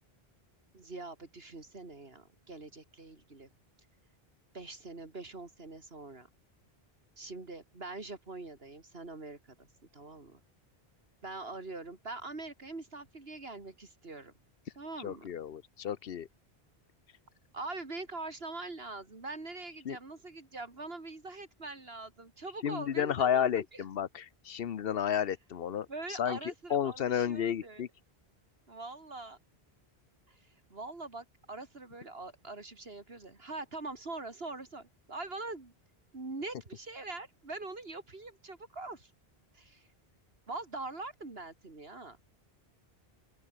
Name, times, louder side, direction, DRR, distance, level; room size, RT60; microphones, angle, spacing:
voice 1, 0.7-3.5 4.5-6.3 7.2-9.7 9.9-10.4 11.2-14.3 14.8-15.3 17.5-23.8 25.9-27.8 28.7-29.4 30.3-35.7 36.1-39.1 39.5-39.9 40.5-42.2, right 3 dB, 70° right, 3.1 m, -43 dB
voice 2, 15.0-16.3 19.8-20.0 22.6-27.9, left 9 dB, 70° left, 1.0 m, -32 dB
open air
omnidirectional pair, 1.0 m